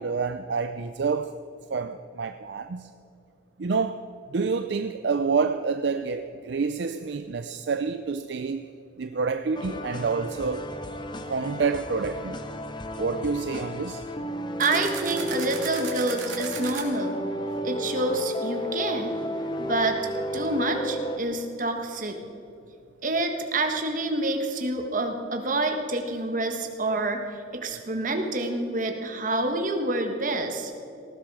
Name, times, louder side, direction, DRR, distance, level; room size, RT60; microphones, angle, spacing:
voice 1, 0.0-1.3 1.7-2.9 3.6-4.0 4.3-8.7 9.0-10.7 11.3-12.4 13.0-14.0, right 5 dB, 65° right, 9 dB, 0.5 m, -28 dB
sound 1, 9.5-21.2, equal, 25° left, 0.9 m, -33 dB
voice 2, 14.6-17.2 17.6-19.2 19.6-22.2 23.0-27.2 27.5-30.7, right 2 dB, 45° right, 4 dB, 1.5 m, -27 dB
sound 2, 14.6-16.8, right 7 dB, 80° right, 2.7 m, -36 dB
18.5 x 15.0 x 4.8 m, 2.7 s
head